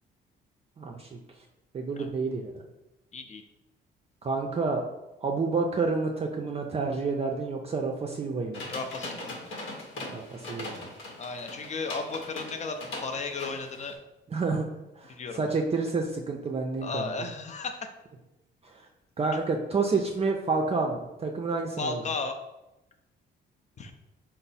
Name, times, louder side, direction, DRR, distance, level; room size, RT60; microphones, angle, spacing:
voice 1, 0.8-1.2 1.7-2.5 4.2-4.8 5.2-8.6 10.1-10.9 14.3-14.7 15.0-17.1 18.6-18.9 19.2-22.0, right 4 dB, 30° right, 1 dB, 0.4 m, -29 dB
voice 2, 3.1-3.4 8.7-9.4 11.2-14.0 15.1-15.5 16.8-17.9 21.8-22.4 23.8-23.9, left 4 dB, 35° left, 5 dB, 0.5 m, -34 dB
sound 1, 8.5-13.9, left 2 dB, 80° left, 0.9 m, -40 dB
4.3 x 2.0 x 4.0 m, 0.96 s
cardioid pair, 90°, 20 cm